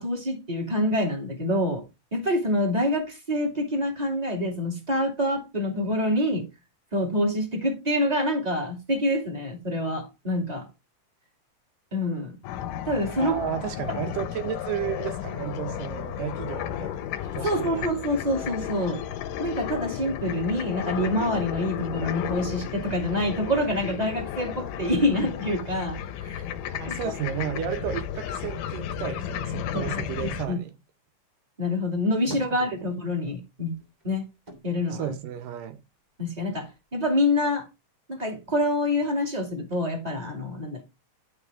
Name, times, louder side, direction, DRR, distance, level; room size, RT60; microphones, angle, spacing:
voice 1, 0.0-1.8 2.1-6.4 6.9-10.7 11.9-12.4 12.8-13.4 17.4-19.0 19.4-26.4 26.9-27.0 29.7-30.6 31.6-33.8 34.0-34.3 34.6-35.1 36.2-37.7 38.1-40.8, left 1 dB, 15° right, 1.9 m, -26 dB
sound 1, 12.4-30.5, left 10 dB, 85° left, 2.3 m, -33 dB
voice 2, 13.2-17.0 17.3-17.9 26.8-30.7 32.6-32.7 34.9-35.8, right 10 dB, 80° right, 2.5 m, -33 dB
sound 2, 31.9-33.3 33.6-36.0 36.4-37.3, right 1 dB, 35° right, 0.7 m, -45 dB
11.0 x 5.3 x 3.5 m
omnidirectional pair, 3.8 m